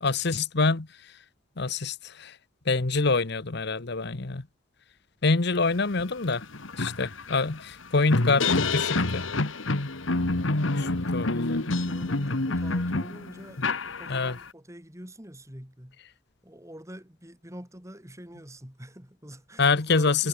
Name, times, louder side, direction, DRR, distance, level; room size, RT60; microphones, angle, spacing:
voice 1, 0.0-0.9 1.6-2.3 2.7-4.4 5.2-6.4 6.8-9.2 10.7-11.8 14.1-14.3 19.6-20.3, left 3 dB, 55° left, 1.1 m, -26 dB
sound 1, 6.0-6.1 6.4-14.5, left 2 dB, 75° left, 1.7 m, -27 dB
voice 2, 10.8-16.0 16.4-20.3, right 1 dB, 15° right, 4.7 m, -46 dB
head